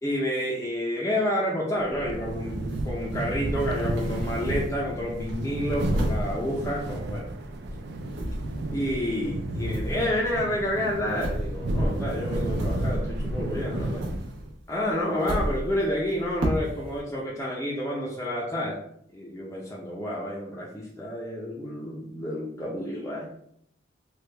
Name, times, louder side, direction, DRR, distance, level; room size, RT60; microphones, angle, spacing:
voice 1, 0.0-7.3 8.7-14.0 14.7-18.8 19.1-23.3, left 1 dB, 15° left, -5 dB, 0.5 m, -29 dB
sound 1, 1.8-14.5, right 1 dB, 60° right, 0.4 m, -31 dB
sound 2, 2.7-4.8 5.3-7.4 7.6-13.3 13.6-17.0, equal, 80° right, 0.8 m, -35 dB
3.2 x 2.2 x 3.2 m, 0.69 s
head